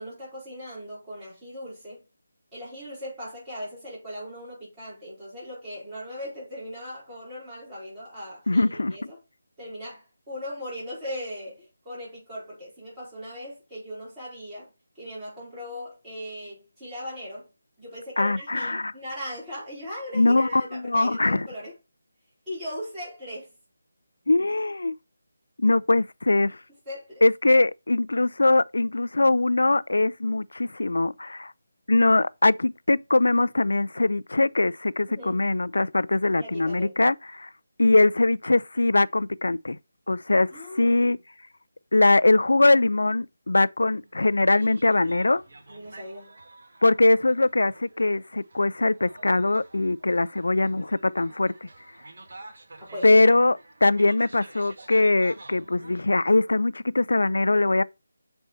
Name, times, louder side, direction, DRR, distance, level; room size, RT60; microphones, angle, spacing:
voice 1, 0.0-2.0 2.5-9.2 9.6-14.7 14.9-17.5 17.8-21.7 22.5-23.5 26.9-27.2 35.1-35.4 36.4-36.9 40.5-41.2 45.7-46.3 52.8-53.1, equal, 10° right, 4.6 m, -39 dB
voice 2, 8.5-8.9 18.2-18.9 20.1-21.5 24.3-24.9 25.6-26.6 27.2-31.5 31.9-37.5 37.8-39.8 40.1-41.2 41.9-45.4 46.8-51.7 53.0-57.8, left 2 dB, 85° left, 0.3 m, -22 dB
sound 1, 44.0-56.0, right 2 dB, 50° right, 1.7 m, -49 dB
7.6 x 4.4 x 4.1 m
figure-of-eight pair, 175°, 0 cm